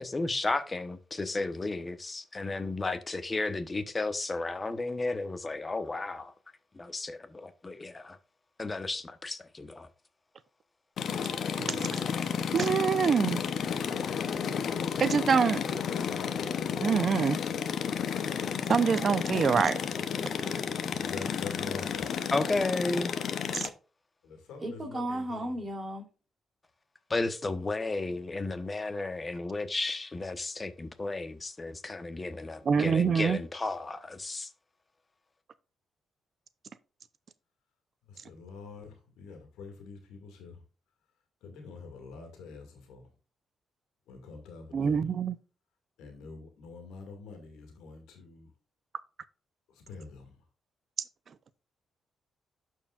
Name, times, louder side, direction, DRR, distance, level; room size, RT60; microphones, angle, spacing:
voice 1, 0.0-6.3 6.7-8.2 8.6-9.9 22.3-23.2 27.1-34.5, left 2 dB, 30° left, 1.1 m, -33 dB
sound 1, 11.0-23.7, left 7 dB, 70° left, 0.8 m, -32 dB
voice 2, 11.6-12.0 12.5-13.4 15.0-15.6 16.8-17.4 18.7-19.8 23.5-23.7 32.7-33.4 44.7-45.3, right 6 dB, 55° right, 0.6 m, -25 dB
voice 3, 20.7-22.1 24.2-25.6 38.1-40.6 41.4-43.1 44.1-45.1 46.0-48.5 49.7-50.4, left 4 dB, 90° left, 2.1 m, -46 dB
voice 4, 24.6-26.0, right 1 dB, 35° right, 3.4 m, -35 dB
12.5 x 4.7 x 2.5 m
supercardioid pair, 65°, 0 cm